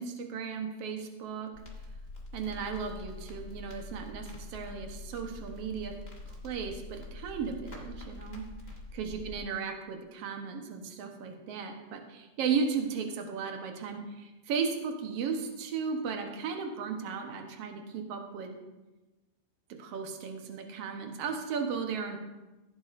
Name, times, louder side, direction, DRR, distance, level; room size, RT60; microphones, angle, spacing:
voice 1, 0.0-1.5 2.3-5.9 6.4-8.4 8.9-18.6 19.8-22.2, right 5 dB, 65° right, 3 dB, 1.6 m, -35 dB
Crackle, 1.5-9.4, left 2 dB, 25° left, 0.9 m, -45 dB
15.5 x 9.2 x 2.6 m, 1.1 s
omnidirectional pair, 4.1 m